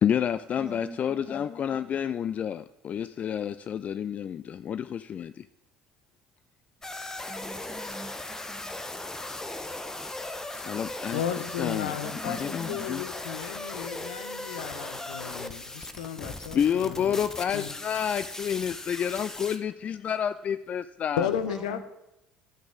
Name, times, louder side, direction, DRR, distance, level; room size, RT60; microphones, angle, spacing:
voice 1, 0.0-5.5 10.5-11.2 11.6-12.0 12.2-13.0 16.5-21.3, left 8 dB, 40° left, 14 dB, 0.4 m, -29 dB
voice 2, 0.6-1.4 7.3-9.0 12.0-12.8 21.5-21.8, right 2 dB, 20° right, 8 dB, 1.3 m, -44 dB
sound 1, 6.8-19.6, left 2 dB, 15° left, 1.2 m, -38 dB
voice 3, 11.1-17.2 17.5-17.7 21.2-21.8, left 9 dB, 75° left, 10 dB, 0.8 m, -34 dB
13.0 x 6.2 x 6.4 m, 0.89 s
figure-of-eight pair, 60°, 4 cm